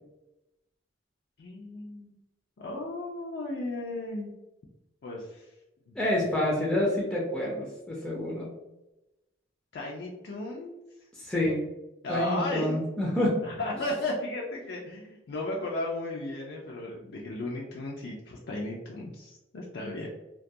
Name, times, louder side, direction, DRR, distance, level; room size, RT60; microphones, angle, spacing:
voice 1, 1.4-2.2 2.6-4.3 5.0-5.5 5.9-6.0 6.4-6.6 9.7-10.7 12.0-12.8 13.4-20.1, left 2 dB, 60° left, -2 dB, 0.4 m, -35 dB
voice 2, 6.0-8.5 11.2-11.6 12.1-13.4 19.8-20.0, left 1 dB, 5° left, -4 dB, 0.4 m, -28 dB
2.3 x 2.2 x 2.6 m, 0.96 s
head